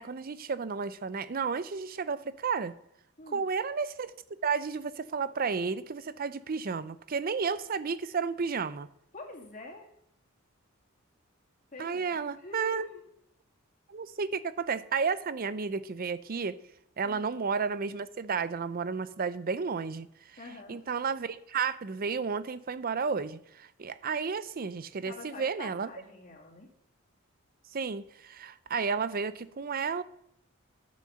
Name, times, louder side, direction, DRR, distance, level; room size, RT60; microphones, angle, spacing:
voice 1, 0.0-2.7 3.3-4.1 4.4-8.9 11.8-12.9 13.9-16.6 17.0-20.1 20.7-25.9 27.7-30.0, right 5 dB, 45° right, 0.5 m, -32 dB
voice 2, 9.1-9.9 11.7-13.0 17.0-17.3 20.4-20.8 25.1-26.7, left 3 dB, 40° left, 2.3 m, -46 dB
10.5 x 6.3 x 6.9 m
head